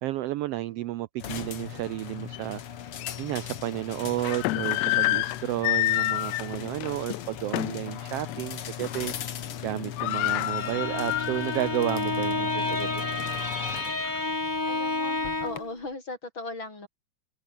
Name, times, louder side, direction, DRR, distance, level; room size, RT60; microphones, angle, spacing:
voice 1, 0.0-2.6 3.2-13.1, right 15 dB, 85° right, 1.3 m, -32 dB
sound 1, 1.2-15.6, left 9 dB, 55° left, 2.1 m, -38 dB
sound 2, 2.3-2.4 3.0-3.1 4.0-7.9 8.3-8.5 8.8-9.2 9.5-9.6 9.8-11.7 12.1-12.2 12.8-14.2, left 17 dB, 75° left, 1.7 m, -29 dB
Bowed string instrument, 10.4-15.7, left 2 dB, 15° left, 2.6 m, -30 dB
voice 2, 14.7-16.9, left 2 dB, 40° left, 7.5 m, -38 dB
omnidirectional pair, 3.5 m